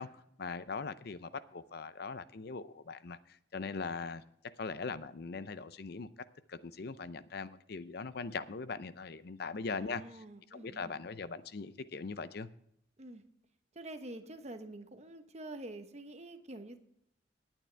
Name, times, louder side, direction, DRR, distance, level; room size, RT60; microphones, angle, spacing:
voice 1, 0.0-4.2 4.6-6.1 6.5-10.0 10.5-12.5, left 4 dB, 55° left, 14 dB, 0.6 m, -41 dB
voice 2, 9.6-10.9 13.0-13.2 13.7-16.8, right 1 dB, 35° right, 8 dB, 1.1 m, -47 dB
19.0 x 9.0 x 3.4 m, 0.72 s
head